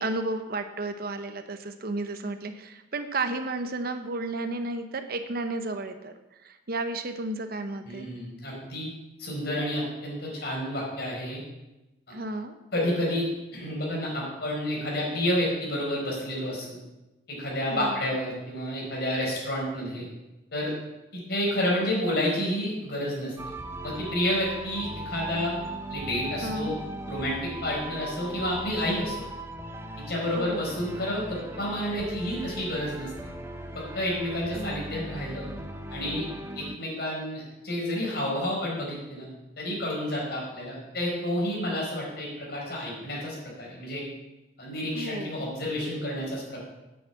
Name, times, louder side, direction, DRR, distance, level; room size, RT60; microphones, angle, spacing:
voice 1, 0.0-6.1 6.4-8.1 12.1-12.5 17.7-18.0 26.4-26.7 30.4-30.6 34.5-34.8 44.9-45.4, right 2 dB, 55° right, 8 dB, 0.9 m, -32 dB
voice 2, 7.8-8.9 9.2-11.4 12.1-12.2 12.7-16.8 17.3-20.1 20.5-20.7 21.1-23.3 23.8-25.5 25.9-26.7 27.1-29.2 30.0-33.1 33.7-35.5 35.9-36.2 36.5-39.3 39.6-44.0 44.6-46.6, left 1 dB, 60° left, -3 dB, 4.9 m, -30 dB
sound 1, 23.4-36.8, right 1 dB, 15° right, 0.8 m, -38 dB
8.7 x 7.3 x 8.1 m, 1.0 s
head